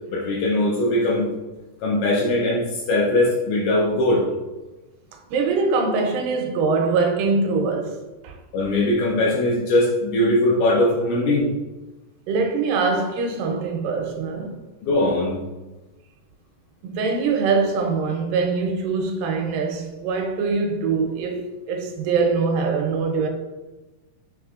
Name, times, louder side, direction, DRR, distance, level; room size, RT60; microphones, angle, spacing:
voice 1, 0.1-1.4 1.8-4.3 8.5-11.5 14.8-15.4, left 1 dB, 75° left, 1.9 m, -20 dB
voice 2, 5.1-8.4 12.3-14.6 16.8-23.3, right 4 dB, 80° right, 2.3 m, -23 dB
6.1 x 3.3 x 2.4 m
omnidirectional pair, 3.9 m